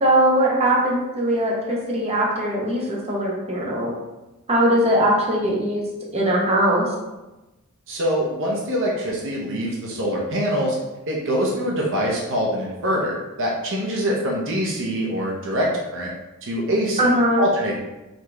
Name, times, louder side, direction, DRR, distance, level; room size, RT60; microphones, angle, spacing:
voice 1, 0.0-3.9 4.5-5.9 6.1-6.8 17.0-17.4, right 1 dB, 30° right, -3 dB, 0.9 m, -20 dB
voice 2, 7.9-10.8 11.1-16.1 16.4-17.1 17.4-17.7, equal, 60° right, -3 dB, 0.8 m, -24 dB
4.1 x 3.1 x 3.3 m, 1.0 s
head